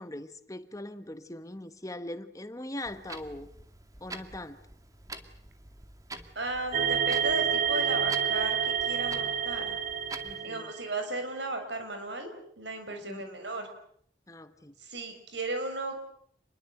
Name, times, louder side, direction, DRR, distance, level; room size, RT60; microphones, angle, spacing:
voice 1, 0.0-3.5 4.0-4.6 10.2-10.7 12.9-13.2 14.3-14.8, left 1 dB, 20° left, 11 dB, 1.2 m, -41 dB
Clock, 2.8-10.4, right 2 dB, 20° right, 2.2 m, -46 dB
voice 2, 6.3-9.8 10.4-13.7 14.8-15.9, right 2 dB, 70° right, 6 dB, 6.5 m, -35 dB
sound 1, 6.7-11.0, right 8 dB, 45° right, 2.0 m, -29 dB
28.5 x 22.0 x 8.0 m, 0.64 s
head